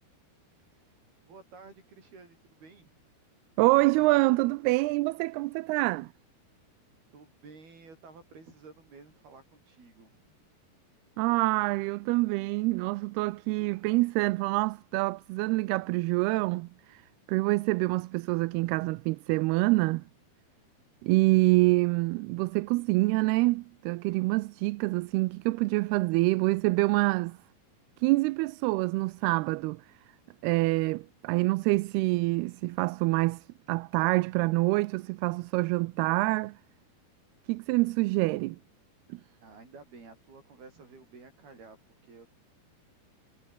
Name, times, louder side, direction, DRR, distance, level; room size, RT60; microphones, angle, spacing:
voice 1, 0.6-1.0 1.3-2.9 7.1-10.5 39.4-41.8 42.0-42.3, right 4 dB, 75° right, 9.5 m, -52 dB
voice 2, 3.6-6.1 11.2-17.0 17.3-20.0 21.0-27.4 28.0-29.8 30.4-36.6 37.5-38.6 39.1-39.2, right 22 dB, 90° right, 2.6 m, -26 dB
omnidirectional pair, 4.5 m